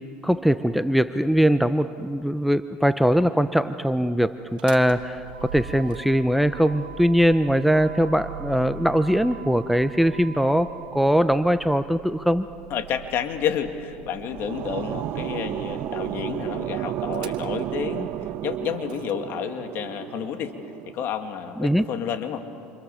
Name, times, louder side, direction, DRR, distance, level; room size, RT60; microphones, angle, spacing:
voice 1, 0.2-12.5 21.6-21.8, equal, ahead, 12 dB, 0.7 m, -21 dB
Motor vehicle (road), 4.4-19.1, right 6 dB, 90° right, 1.4 m, -42 dB
voice 2, 12.7-20.5 20.8-22.4, left 8 dB, 55° left, 7 dB, 2.3 m, -30 dB
sound 1, 13.9-21.1, right 13 dB, 50° right, 0.6 m, -32 dB
28.5 x 28.0 x 7.3 m, 2.5 s
supercardioid pair, 95°, 5 cm